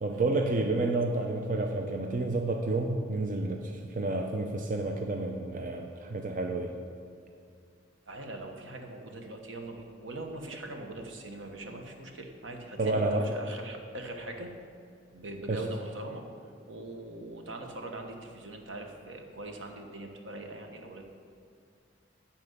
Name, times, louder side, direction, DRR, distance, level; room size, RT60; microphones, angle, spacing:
voice 1, 0.0-6.7 12.8-13.3 15.5-15.6, right 2 dB, 45° right, 3 dB, 0.6 m, -30 dB
voice 2, 8.1-14.5 15.1-16.3 16.7-21.0, right 2 dB, 75° right, 3 dB, 1.2 m, -41 dB
11.0 x 4.4 x 7.9 m, 2.4 s
head